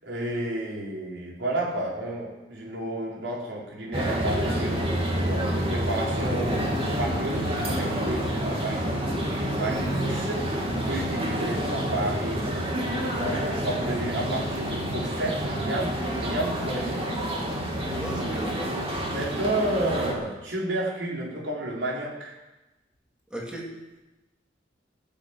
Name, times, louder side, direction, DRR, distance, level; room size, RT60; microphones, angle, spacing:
voice 1, 0.0-6.6 7.0-12.8 13.2-17.1 19.1-22.4, right 1 dB, 80° right, -4 dB, 4.7 m, -31 dB
sound 1, 3.9-20.1, equal, 30° right, 3.1 m, -28 dB
voice 2, 17.9-18.7 23.3-23.7, right 1 dB, 5° right, -3 dB, 3.3 m, -35 dB
15.5 x 9.0 x 9.1 m, 1.1 s
head